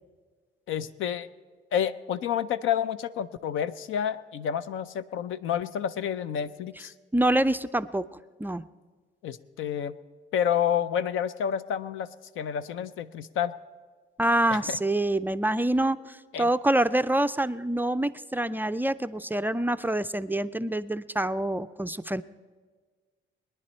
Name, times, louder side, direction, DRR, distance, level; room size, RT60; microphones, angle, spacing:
voice 1, 0.7-1.3 1.7-6.9 9.2-9.9 10.3-13.5 14.5-14.8 16.3-16.5, left 9 dB, 80° left, 15 dB, 0.6 m, -29 dB
voice 2, 7.1-8.1 8.4-8.7 14.2-22.2, right 1 dB, 10° right, 11 dB, 0.3 m, -26 dB
22.0 x 10.0 x 4.3 m, 1.5 s
cardioid pair, 90°, 20 cm